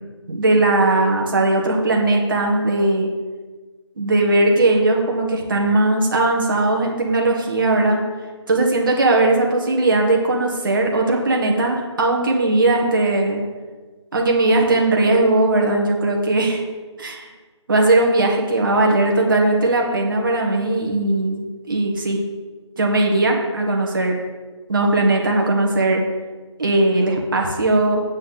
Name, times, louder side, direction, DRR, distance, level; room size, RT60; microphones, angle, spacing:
voice 1, 0.3-3.1 4.0-8.0 8.5-13.4 14.1-16.6 17.0-17.3 17.7-22.2 22.8-24.1 24.7-26.0 26.6-28.0, right 2 dB, 45° right, 0 dB, 1.8 m, -18 dB
9.7 x 8.7 x 4.0 m, 1.4 s
figure-of-eight pair, 160°, 16 cm